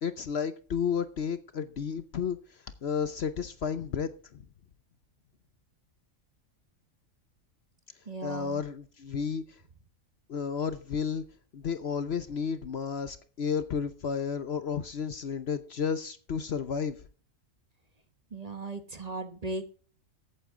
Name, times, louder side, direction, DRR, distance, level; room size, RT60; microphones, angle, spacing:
voice 1, 0.0-2.4 2.8-4.1 8.2-9.4 10.3-11.2 11.5-17.0, left 6 dB, 55° left, 1.0 m, -32 dB
voice 2, 8.1-8.6 18.3-19.6, right 2 dB, 30° right, 1.2 m, -37 dB
14.5 x 8.8 x 3.7 m
omnidirectional pair, 1.4 m